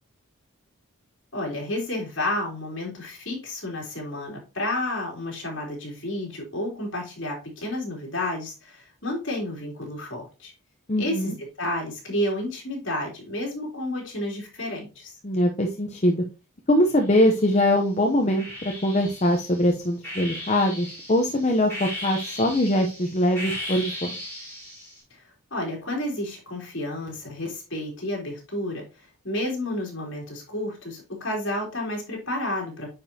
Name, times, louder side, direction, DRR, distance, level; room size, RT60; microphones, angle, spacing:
voice 1, 1.3-10.5 11.0-15.1 25.1-32.9, left 1 dB, 55° left, -1 dB, 3.4 m, -31 dB
voice 2, 10.9-11.3 15.2-16.2 16.7-24.2, left 1 dB, 30° left, 2 dB, 0.7 m, -22 dB
sound 1, 17.0-17.7 18.4-25.0, left 1 dB, 10° left, 3.8 m, -37 dB
9.2 x 5.1 x 2.8 m, 0.30 s
head